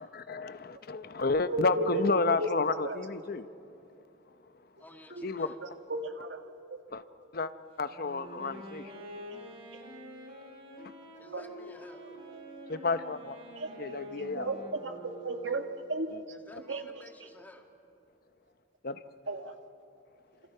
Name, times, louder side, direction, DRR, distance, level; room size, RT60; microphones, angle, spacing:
voice 1, 0.0-3.5 5.2-5.5 6.9-7.0 7.3-7.5 7.8-8.9 12.7-14.5 18.8-19.0, left 3 dB, 55° left, 12 dB, 0.8 m, -31 dB
voice 2, 1.5-2.1 2.4-2.5 2.8-3.0 5.1-5.3 5.6-6.4 6.7-6.8 11.3-11.4 13.6-13.7 14.2-16.2 16.7-16.9 19.3-19.5, right 2 dB, 80° right, 6 dB, 1.7 m, -34 dB
voice 3, 4.8-5.6 11.2-12.0 16.3-17.7, left 1 dB, 10° left, 3 dB, 2.0 m, -53 dB
Wind instrument woodwind instrument, 7.8-15.9, equal, 30° right, 4.9 m, -47 dB
28.5 x 27.5 x 5.6 m, 2.7 s
head